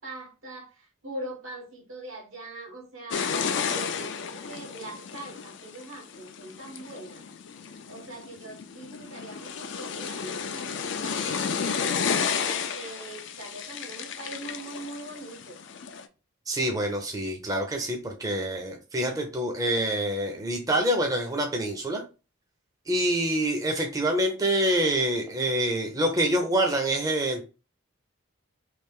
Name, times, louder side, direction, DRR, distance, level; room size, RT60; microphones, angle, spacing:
voice 1, 0.0-7.3 7.7-11.9 12.2-15.6, right 2 dB, 85° right, 1.4 m, -42 dB
sound 1, 3.1-16.1, left 6 dB, 65° left, 0.4 m, -32 dB
voice 2, 16.5-22.0 22.9-27.4, right 1 dB, 15° right, 0.5 m, -26 dB
3.2 x 2.4 x 3.5 m
head